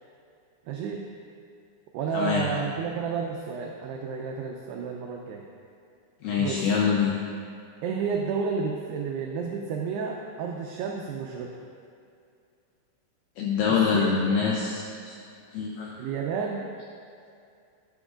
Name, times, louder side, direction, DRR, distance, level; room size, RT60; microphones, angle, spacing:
voice 1, 0.7-1.0 1.9-5.5 6.4-6.6 7.8-11.6 13.7-14.1 16.0-16.7, right 5 dB, 90° right, 1 dB, 2.3 m, -31 dB
voice 2, 2.1-2.4 6.2-7.1 13.4-15.2 15.5-15.9, left 6 dB, 80° left, -3 dB, 2.2 m, -25 dB
12.5 x 9.1 x 2.5 m, 2.4 s
omnidirectional pair, 5.4 m